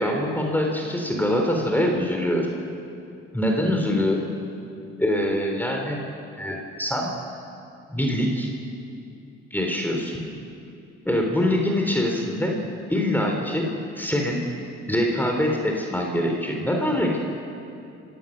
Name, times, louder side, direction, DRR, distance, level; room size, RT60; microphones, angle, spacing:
voice 1, 0.0-2.5 3.3-4.2 5.0-6.0 6.4-7.1 7.9-8.5 9.5-10.3 11.0-12.6 12.9-13.7 14.0-14.5 14.9-17.2, left 1 dB, 5° left, 1 dB, 4.0 m, -24 dB
26.5 x 16.5 x 6.9 m, 2.6 s
supercardioid pair, 60°, 29 cm